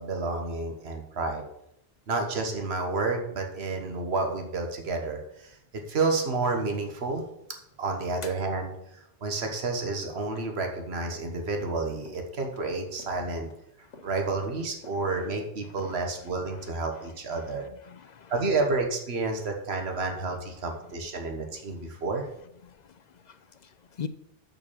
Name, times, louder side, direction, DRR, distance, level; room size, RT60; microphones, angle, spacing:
voice 1, 0.0-1.4 2.1-5.6 5.9-7.2 7.8-13.5 14.0-17.6 18.3-22.3, right 3 dB, 65° right, 4 dB, 1.5 m, -30 dB
sound 1, 11.1-11.8 12.1-12.7 13.0-14.5 14.8-15.4 15.8-16.0 16.3-16.4, left 3 dB, 85° left, 2.0 m, -49 dB
voice 2, 17.3-18.3 21.8-21.9 22.6-24.1, left 7 dB, 55° left, 12 dB, 0.5 m, -43 dB
6.6 x 5.8 x 7.3 m, 0.80 s
omnidirectional pair, 1.2 m